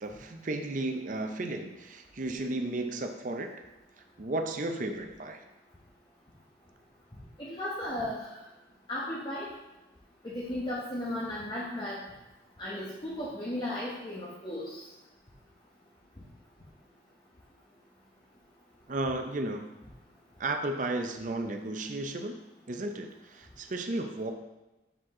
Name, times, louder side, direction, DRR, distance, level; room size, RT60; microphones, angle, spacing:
voice 1, 0.0-3.5 4.2-5.4 18.9-19.7 20.4-22.4 22.7-24.3, right 2 dB, 45° right, 5 dB, 0.5 m, -34 dB
voice 2, 7.6-8.3 8.9-9.5 10.3-12.0 12.6-14.7, left 1 dB, 25° left, -7 dB, 1.0 m, -35 dB
7.6 x 5.1 x 3.7 m, 1.0 s
head